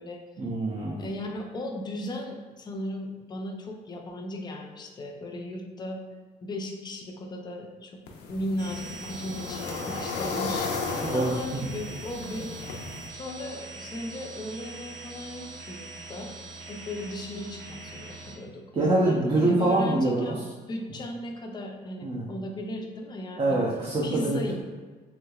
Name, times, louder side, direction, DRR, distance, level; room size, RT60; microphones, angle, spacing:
voice 1, 0.4-1.0 11.0-11.3 18.8-20.4 22.0-22.2 23.4-24.5, right 2 dB, 35° right, -5 dB, 0.6 m, -24 dB
voice 2, 0.9-6.0 6.4-16.3 16.7-23.6 24.0-24.5, left 1 dB, 25° left, 1 dB, 0.5 m, -36 dB
sound 1, 8.1-13.1, left 4 dB, 80° left, 0.5 m, -34 dB
sound 2, 8.6-18.4, right 3 dB, 65° right, 0.8 m, -43 dB
3.3 x 3.0 x 2.3 m, 1.4 s
cardioid pair, 110°, 17 cm